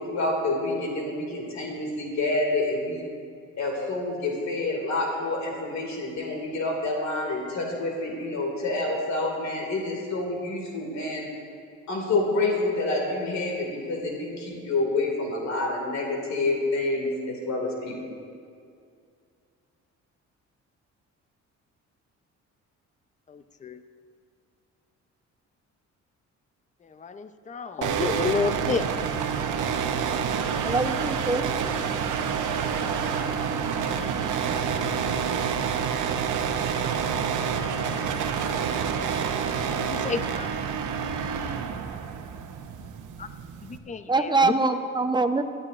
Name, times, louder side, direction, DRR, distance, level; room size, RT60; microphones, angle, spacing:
voice 1, 0.0-3.1 3.6-11.3 11.9-18.2, left 2 dB, 65° left, 0 dB, 2.4 m, -28 dB
voice 2, 23.3-23.8 26.8-28.9 39.8-40.5 43.2-43.3 43.6-44.5, left 5 dB, 25° left, 10 dB, 0.6 m, -30 dB
sound 1, 27.8-43.8, right 7 dB, 80° right, 0.9 m, -28 dB
voice 3, 30.6-31.4 44.1-45.4, right 3 dB, 15° right, 7 dB, 0.8 m, -23 dB
19.5 x 12.0 x 2.5 m, 2.3 s
cardioid pair, 90°, 30 cm